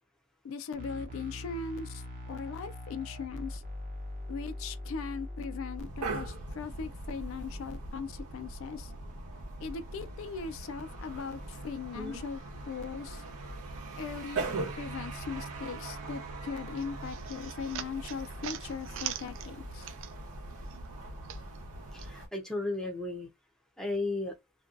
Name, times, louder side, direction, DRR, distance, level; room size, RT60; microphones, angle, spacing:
voice 1, 0.4-3.6 4.3-8.9 9.6-13.2 14.0-14.4 14.8-19.9, left 5 dB, 60° left, 0.3 m, -39 dB
sound 1, 0.7-5.8, left 1 dB, 35° right, 0.7 m, -41 dB
sound 2, 5.8-22.3, right 2 dB, 90° right, 0.8 m, -41 dB
sound 3, 16.8-20.4 20.7-22.1, right 10 dB, 60° right, 0.3 m, -42 dB
voice 2, 21.9-23.3 23.8-24.3, left 2 dB, 5° left, 0.5 m, -34 dB
2.5 x 2.2 x 2.5 m
head